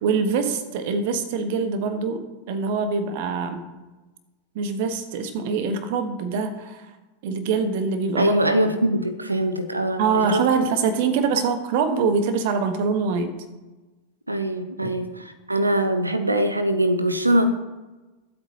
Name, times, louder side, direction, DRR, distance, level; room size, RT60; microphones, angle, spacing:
voice 1, 0.0-3.7 4.5-6.9 7.2-8.3 10.0-13.3 14.8-14.9, right 5 dB, 50° right, 9 dB, 1.5 m, -24 dB
voice 2, 8.2-10.4 14.3-17.5, right 1 dB, 85° right, 10 dB, 0.8 m, -22 dB
23.5 x 8.3 x 3.0 m, 1.1 s
figure-of-eight pair, 90°, 0 cm